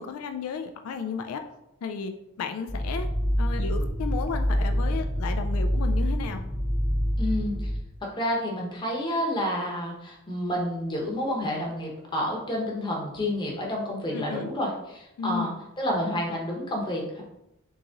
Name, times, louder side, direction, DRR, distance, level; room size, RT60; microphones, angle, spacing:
voice 1, 0.0-1.4 1.8-3.1 3.4-6.4 14.1-14.5 15.2-15.6, left 5 dB, 80° left, 7 dB, 0.3 m, -33 dB
sound 1, 2.7-7.8, equal, 20° right, 0.7 m, -26 dB
voice 2, 7.2-7.7 8.2-15.5 15.8-17.2, equal, 20° left, -1 dB, 0.9 m, -29 dB
3.7 x 3.0 x 3.8 m, 0.86 s
head